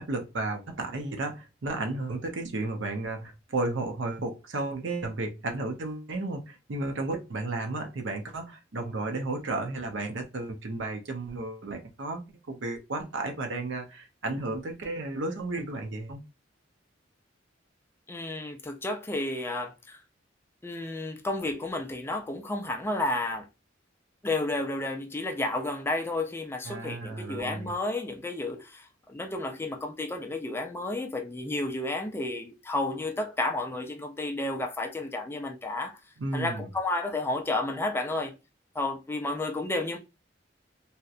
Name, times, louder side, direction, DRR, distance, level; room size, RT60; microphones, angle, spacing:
voice 1, 0.0-12.2 12.5-16.2 26.6-27.7 36.2-36.7, right 2 dB, 75° right, 0.6 m, -33 dB
voice 2, 18.1-20.0 20.6-23.5 24.2-36.0 36.3-38.4 38.8-40.0, left 2 dB, 15° left, 0.3 m, -31 dB
2.7 x 2.1 x 2.4 m
head